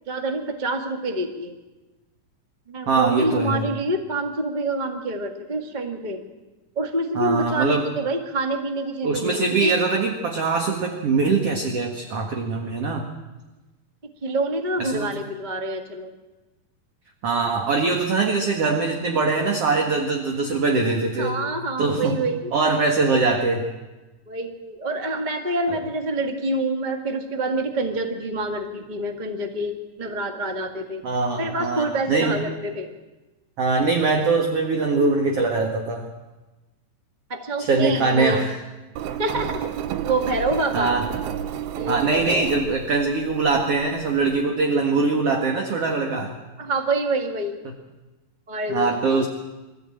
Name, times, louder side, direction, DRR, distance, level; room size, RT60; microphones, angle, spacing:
voice 1, 0.1-1.5 2.7-6.2 6.7-9.8 14.2-16.1 21.1-22.5 24.3-31.0 31.4-32.9 37.3-38.4 39.2-39.6 40.0-41.0 41.7-42.5 46.6-47.6 48.5-49.3, right 2 dB, 35° right, 5 dB, 0.7 m, -27 dB
voice 2, 2.9-3.6 7.2-7.8 9.0-13.0 14.8-15.1 17.2-21.4 21.8-22.2 22.5-23.7 25.7-25.8 31.0-32.4 33.6-36.1 37.6-38.5 40.7-41.1 41.9-46.4 48.7-49.3, right 3 dB, 50° right, 3 dB, 2.1 m, -22 dB
Engine, 39.0-44.4, right 9 dB, 85° right, 3.0 m, -32 dB
24.0 x 14.5 x 8.8 m, 1.1 s
omnidirectional pair, 4.4 m